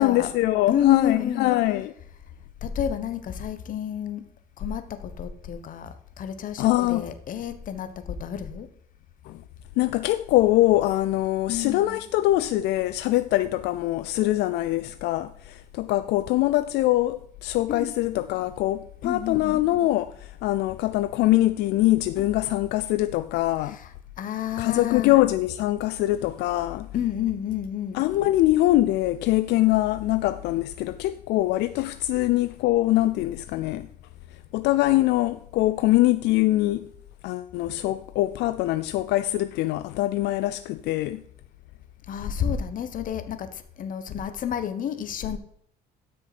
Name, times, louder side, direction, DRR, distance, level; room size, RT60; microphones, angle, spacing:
voice 1, 0.0-1.9 6.6-7.1 9.2-9.4 9.8-23.8 24.6-26.9 27.9-33.9 34.3-36.9 37.2-41.2, left 16 dB, 80° left, 0.4 m, -23 dB
voice 2, 0.7-1.5 2.6-4.2 4.6-8.7 11.5-12.0 17.7-17.9 19.0-19.6 23.6-23.9 24.2-25.1 26.9-28.1 42.1-45.4, left 9 dB, 55° left, 1.1 m, -30 dB
12.5 x 6.3 x 4.2 m
cardioid pair, 110°, 17 cm